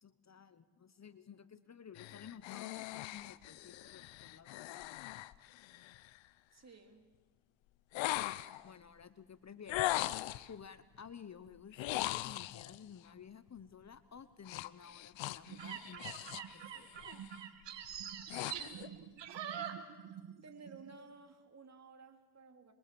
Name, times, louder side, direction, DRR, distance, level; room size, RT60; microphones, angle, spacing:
voice 1, 0.0-4.9 8.6-9.9 10.5-16.9, left 7 dB, 35° left, 13 dB, 1.1 m, -54 dB
sound 1, 2.0-6.2 7.9-8.7 9.7-10.5 11.7-12.8 14.5-16.6 16.9-17.3 17.8-18.9, left 17 dB, 85° left, 0.8 m, -40 dB
voice 2, 6.5-7.1 9.6-9.8 20.4-22.7, right 4 dB, 35° right, 5 dB, 3.4 m, -55 dB
sound 2, 15.5-20.4 20.7-20.9, right 9 dB, 70° right, 2.4 m, -44 dB
26.0 x 23.0 x 7.1 m, 1.2 s
cardioid pair, 75°, 44 cm